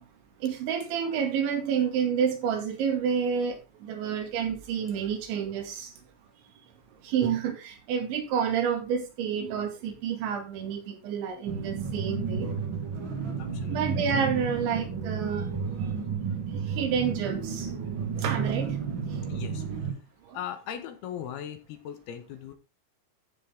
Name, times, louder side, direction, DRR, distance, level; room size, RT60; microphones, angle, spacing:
voice 1, 0.4-5.9 7.0-12.5 13.7-15.5 16.5-17.7 18.2-18.7, right 7 dB, 85° right, 5 dB, 4.4 m, -29 dB
sound 1, 11.4-19.9, right 5 dB, 40° right, 1.8 m, -32 dB
voice 2, 13.4-13.8 19.3-19.9 20.3-22.5, left 9 dB, 70° left, 8 dB, 2.8 m, -39 dB
14.5 x 6.3 x 3.6 m, 0.27 s
omnidirectional pair, 5.2 m